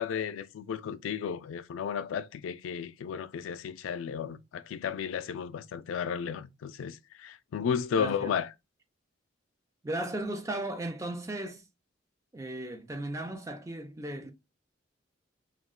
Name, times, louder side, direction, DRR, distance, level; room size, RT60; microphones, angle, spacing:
voice 1, 0.0-8.5, left 7 dB, 80° left, 0.3 m, -33 dB
voice 2, 7.9-8.3 9.8-11.7 12.3-14.3, right 1 dB, 15° right, 0.3 m, -36 dB
2.3 x 2.2 x 3.6 m
head